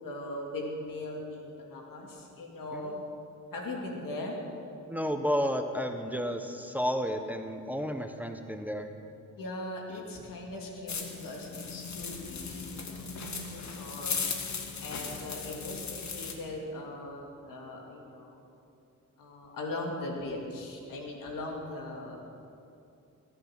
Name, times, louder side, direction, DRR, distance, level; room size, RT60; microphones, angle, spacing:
voice 1, 0.0-3.0 3.5-4.4 9.4-14.2 14.8-18.4 19.2-22.2, left 2 dB, 80° left, 0 dB, 2.6 m, -39 dB
voice 2, 4.9-8.9, equal, 5° right, 6 dB, 1.0 m, -32 dB
sound 1, 10.9-16.3, left 5 dB, 55° left, 1.8 m, -37 dB
20.0 x 8.6 x 6.0 m, 2.6 s
cardioid pair, 70°, 33 cm